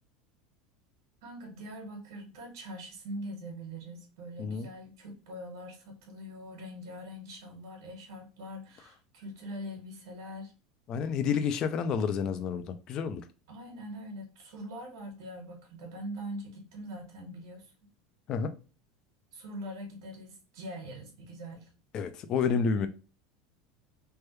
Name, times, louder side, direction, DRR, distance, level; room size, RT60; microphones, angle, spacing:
voice 1, 1.2-10.5 13.5-17.7 19.3-21.7, equal, 90° right, 1.4 m, -43 dB
voice 2, 10.9-13.2 18.3-18.5 21.9-22.9, left 6 dB, 30° left, 0.3 m, -29 dB
3.3 x 2.2 x 3.0 m
supercardioid pair, 175°, 2 cm